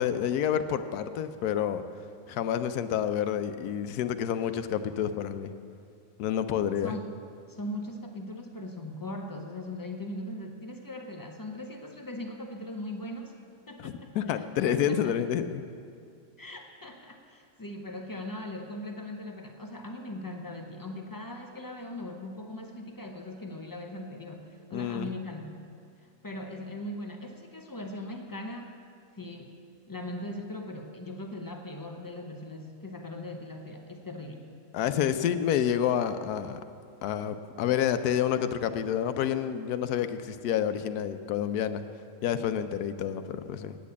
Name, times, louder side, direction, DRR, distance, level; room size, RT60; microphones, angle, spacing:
voice 1, 0.0-1.8 2.3-5.5 6.2-7.0 13.8-15.7 24.7-25.1 34.7-36.6 37.0-41.8 42.2-43.8, left 9 dB, 85° left, 10 dB, 1.1 m, -29 dB
voice 2, 7.5-13.3 13.7-15.1 16.4-25.6 26.2-28.7 29.2-29.6 29.9-34.5, left 1 dB, 30° left, 3 dB, 0.3 m, -39 dB
9.2 x 8.6 x 8.3 m, 2.4 s
omnidirectional pair, 1.6 m